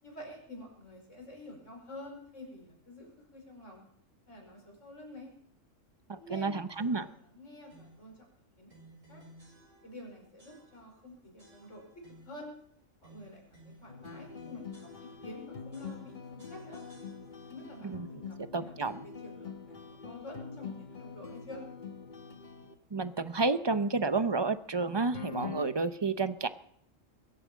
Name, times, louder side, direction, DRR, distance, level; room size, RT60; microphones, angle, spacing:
voice 1, 0.0-3.8 4.3-5.3 6.1-8.3 8.6-9.2 9.8-11.8 12.2-12.5 13.0-16.8 17.5-18.4 18.6-18.9 19.2-21.6, left 1 dB, 70° left, 1 dB, 5.4 m, -48 dB
voice 2, 6.1-7.0 17.8-18.1 18.5-19.0 22.9-26.5, right 3 dB, 30° right, 12 dB, 0.5 m, -30 dB
sound 1, 6.7-7.1 7.7-8.1 8.7-10.1 10.4-11.0 11.4-12.5 13.0-15.4 15.7-17.6, right 1 dB, 85° right, 7.1 m, -57 dB
sound 2, 13.9-22.7 25.1-25.7, left 6 dB, 40° left, 1.1 m, -44 dB
21.5 x 9.0 x 7.4 m, 0.68 s
omnidirectional pair, 1.3 m